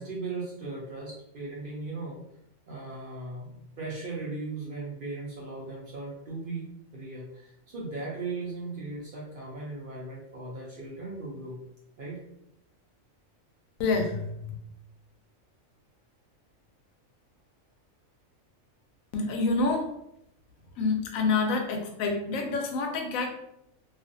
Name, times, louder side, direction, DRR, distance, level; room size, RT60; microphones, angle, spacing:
voice 1, 0.0-2.2 2.7-6.7 6.9-11.6 12.0-12.2, right 3 dB, 55° right, -4 dB, 0.6 m, -37 dB
voice 2, 13.8-14.6 19.1-19.9 20.8-23.3, left 3 dB, 85° left, 3 dB, 1.0 m, -27 dB
2.4 x 2.4 x 2.5 m, 0.78 s
omnidirectional pair, 1.4 m